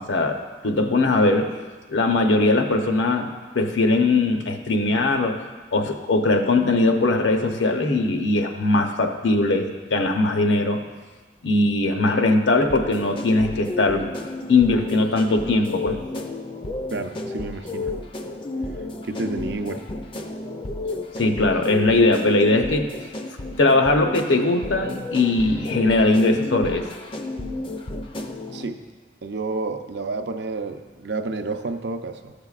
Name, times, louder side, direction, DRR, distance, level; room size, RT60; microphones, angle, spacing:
voice 1, 0.0-1.5 1.9-5.4 5.7-10.8 11.4-14.0 14.5-16.0 21.2-22.9 23.6-26.9, left 2 dB, 80° left, 4 dB, 0.8 m, -20 dB
sound 1, 12.6-28.6, left 2 dB, 25° left, 0.4 m, -32 dB
voice 2, 16.9-17.9 19.1-19.8 28.5-28.8 29.2-32.3, right 3 dB, 65° right, 7 dB, 0.5 m, -30 dB
14.0 x 6.8 x 2.4 m, 1.3 s
head